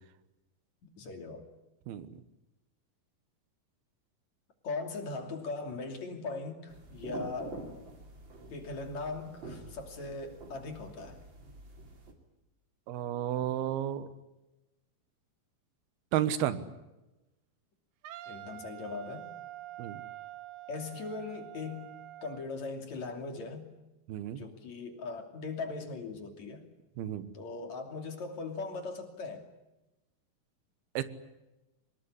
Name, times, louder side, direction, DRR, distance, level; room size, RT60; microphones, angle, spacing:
voice 1, 0.8-1.5 4.6-7.6 8.5-11.2 18.3-19.3 20.7-21.9 22.2-23.7 24.4-26.6 27.3-29.5, left 3 dB, 50° left, 5 dB, 3.9 m, -39 dB
voice 2, 1.9-2.2 12.9-14.1 16.1-16.7 19.8-20.0 24.1-24.4 27.0-27.3 30.9-31.0, right 11 dB, 90° right, 13 dB, 3.2 m, -32 dB
sound 1, 6.7-12.1, right 2 dB, 35° right, 3.5 m, -46 dB
Wind instrument woodwind instrument, 18.0-22.5, right 14 dB, 70° right, 2.2 m, -46 dB
24.0 x 20.5 x 9.9 m, 1.0 s
omnidirectional pair, 4.3 m